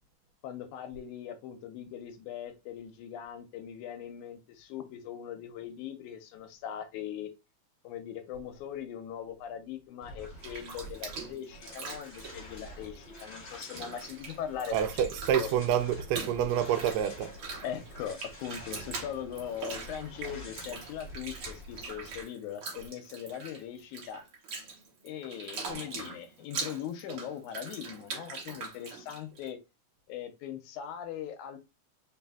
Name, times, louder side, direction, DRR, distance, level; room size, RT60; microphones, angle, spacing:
voice 1, 0.4-7.3 7.8-14.9 15.3-15.5 17.6-24.2 25.0-29.6 30.1-31.6, left 9 dB, 80° left, 1.8 m, -40 dB
sound 1, 10.0-22.2, equal, 45° left, 0.6 m, -48 dB
Bathtub (filling or washing), 10.2-13.2 13.5-29.5, right 4 dB, 55° right, 1.6 m, -42 dB
voice 2, 14.7-17.6, right 9 dB, 85° right, 2.1 m, -28 dB
4.0 x 4.0 x 2.2 m
omnidirectional pair, 3.6 m